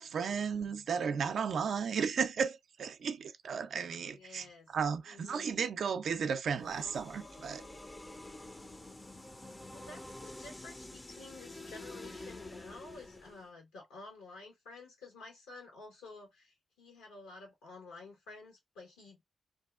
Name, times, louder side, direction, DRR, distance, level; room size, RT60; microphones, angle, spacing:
voice 1, 0.0-7.6, right 6 dB, 65° right, 0.4 m, -34 dB
voice 2, 4.1-4.7 5.1-5.6 9.4-19.2, left 3 dB, 85° left, 1.1 m, -52 dB
sound 1, 6.6-13.5, left 2 dB, 20° left, 0.4 m, -48 dB
2.6 x 2.3 x 2.3 m
hypercardioid pair, 40°, 0 cm